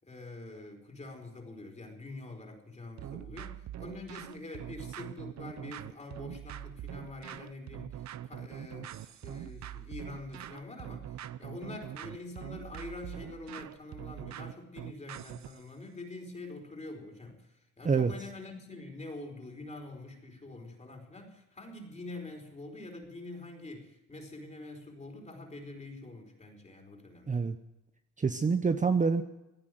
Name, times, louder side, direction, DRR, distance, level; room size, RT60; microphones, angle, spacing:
voice 1, 0.0-27.4, left 2 dB, 25° left, 3 dB, 4.6 m, -45 dB
sound 1, 3.0-15.6, right 11 dB, 65° right, 0.8 m, -43 dB
voice 2, 27.3-27.6 28.2-29.2, right 5 dB, 25° right, 9 dB, 0.9 m, -26 dB
17.0 x 9.9 x 7.8 m, 0.93 s
cardioid pair, 90°, 30 cm